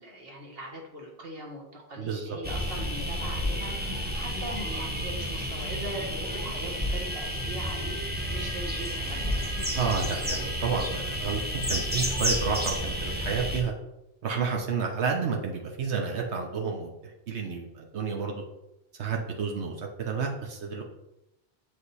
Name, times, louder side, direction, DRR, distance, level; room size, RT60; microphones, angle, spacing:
voice 1, 0.0-9.5, right 1 dB, 60° right, 0 dB, 1.7 m, -40 dB
voice 2, 2.0-2.4 9.7-13.7 14.2-18.4 19.0-20.8, right 5 dB, 80° right, 1 dB, 1.2 m, -30 dB
sound 1, 2.4-13.6, equal, 10° right, 1.1 m, -31 dB
7.6 x 5.0 x 4.1 m, 0.90 s
omnidirectional pair, 1.1 m